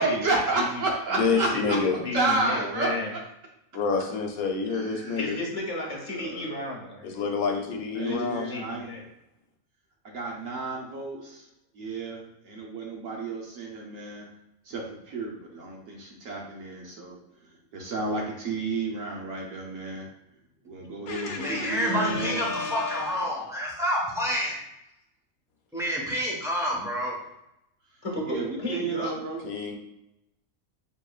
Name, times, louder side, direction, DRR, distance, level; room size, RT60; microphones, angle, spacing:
voice 1, 0.0-1.8 2.1-3.2 4.7-5.2 6.1-6.6 7.9-8.9 10.0-11.5 11.7-14.3 14.6-17.2 17.7-20.1 20.6-22.4 28.3-29.4, right 3 dB, 65° right, -1 dB, 1.1 m, -31 dB
voice 2, 1.1-2.0 3.7-5.4 7.0-8.5 21.1-23.2 29.4-29.8, left 4 dB, 75° left, 2 dB, 1.2 m, -29 dB
voice 3, 2.0-3.1 5.2-7.4 8.1-9.0 28.0-29.1, left 2 dB, 25° left, -1 dB, 1.2 m, -33 dB
voice 4, 21.4-24.6 25.7-27.2, equal, ahead, -4 dB, 1.0 m, -28 dB
7.1 x 3.0 x 2.4 m, 0.86 s
omnidirectional pair, 1.5 m